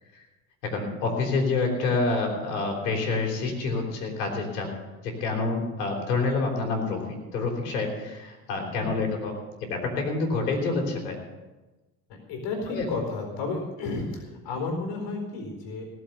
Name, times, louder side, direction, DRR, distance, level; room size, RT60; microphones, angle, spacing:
voice 1, 0.6-4.7 5.0-9.3 9.6-11.2 12.7-12.9, left 3 dB, 80° left, 1 dB, 3.6 m, -27 dB
voice 2, 12.3-15.8, left 3 dB, 60° left, 3 dB, 4.4 m, -32 dB
18.0 x 7.6 x 6.8 m, 1.1 s
hypercardioid pair, 65°, 48 cm